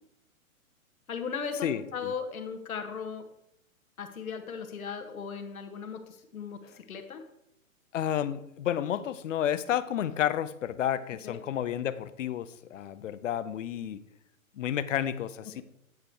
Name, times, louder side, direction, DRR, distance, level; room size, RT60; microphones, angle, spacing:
voice 1, 1.1-3.3 4.0-7.2 11.2-11.4, left 6 dB, 80° left, 6 dB, 1.4 m, -37 dB
voice 2, 1.6-2.1 6.6-6.8 7.9-14.0 14.6-15.6, left 10 dB, 60° left, 14 dB, 0.7 m, -31 dB
9.2 x 4.9 x 4.6 m, 0.79 s
hypercardioid pair, 140°, 42 cm